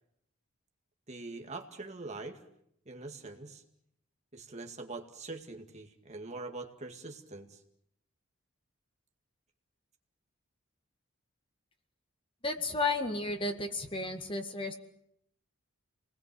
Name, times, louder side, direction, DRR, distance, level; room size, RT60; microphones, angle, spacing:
voice 1, 1.1-2.4 2.9-3.6 4.3-7.6, right 3 dB, 35° right, 3 dB, 2.2 m, -43 dB
voice 2, 12.4-14.7, left 3 dB, 25° left, 5 dB, 2.0 m, -33 dB
29.0 x 20.0 x 7.8 m, 0.74 s
head